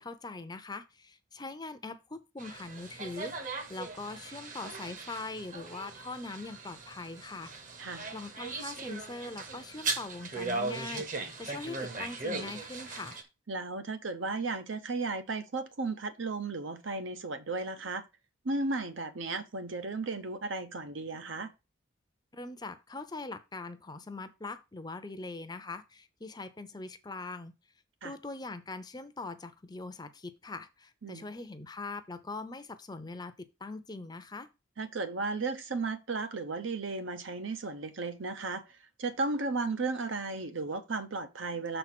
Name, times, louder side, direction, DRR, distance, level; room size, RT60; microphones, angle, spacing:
voice 1, 0.0-7.5 8.1-13.2 22.3-27.5 28.0-34.5, left 3 dB, 20° left, 0.6 m, -42 dB
sound 1, 2.4-13.2, right 3 dB, 40° right, 1.1 m, -39 dB
voice 2, 7.8-8.1 13.5-18.0 18.4-21.5 28.0-28.1 31.0-31.2 34.8-38.6 39.0-41.8, right 3 dB, 70° right, 0.8 m, -34 dB
6.6 x 4.5 x 5.9 m
head